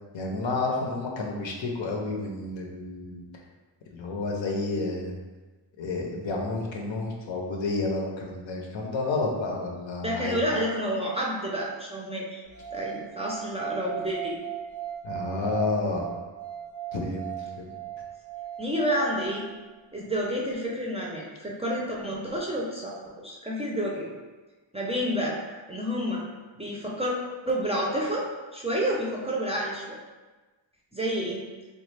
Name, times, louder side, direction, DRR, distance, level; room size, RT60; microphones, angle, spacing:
voice 1, 0.1-3.2 3.9-5.1 5.8-10.4 15.0-16.1 16.9-17.7, left 3 dB, 75° left, 0 dB, 0.7 m, -30 dB
voice 2, 10.0-12.4 12.7-14.4 18.6-19.5 19.9-24.1 24.7-25.4 25.7-26.2 26.5-27.1 27.5-28.3 28.5-30.0 30.9-31.5, equal, 15° right, -4 dB, 0.4 m, -29 dB
sound 1, 12.5-19.6, right 11 dB, 25° left, 0.6 m, -38 dB
3.1 x 2.3 x 3.2 m, 1.3 s
wide cardioid pair, 105°, 46 cm